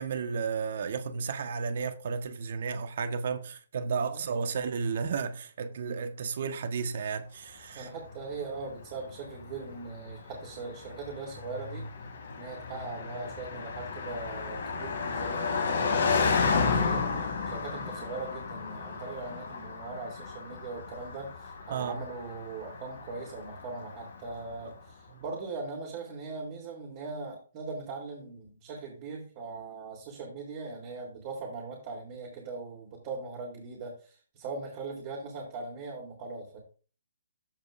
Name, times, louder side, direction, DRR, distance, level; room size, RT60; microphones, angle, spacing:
voice 1, 0.0-7.9 21.7-22.0 25.1-25.2, right 5 dB, 55° right, 1.3 m, -33 dB
voice 2, 4.1-4.6 7.7-11.9 12.3-17.1 17.5-36.6, right 3 dB, 35° right, 3.5 m, -40 dB
Car passing by, 8.1-24.5, left 5 dB, 65° left, 2.9 m, -33 dB
15.0 x 5.3 x 2.6 m
figure-of-eight pair, 135°, 0 cm